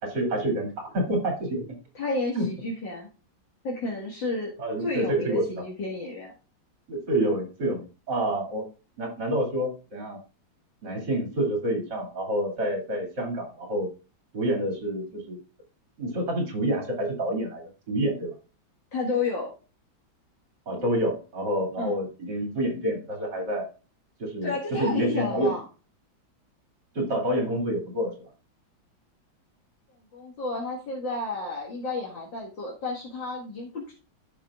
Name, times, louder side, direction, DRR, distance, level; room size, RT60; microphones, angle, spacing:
voice 1, 0.0-1.7 2.3-2.5 4.6-5.6 6.9-8.6 9.0-10.2 10.8-13.9 14.3-15.4 16.0-18.3 20.7-23.7 24.2-25.6 26.9-28.3, right 1 dB, 60° right, 0 dB, 3.4 m, -28 dB
voice 2, 2.0-3.1 3.6-4.5 4.8-6.3 18.9-19.5 21.8-22.0 24.4-25.6 30.1-33.9, left 3 dB, 65° left, -4 dB, 2.4 m, -31 dB
14.5 x 5.5 x 2.4 m, 0.33 s
omnidirectional pair, 2.2 m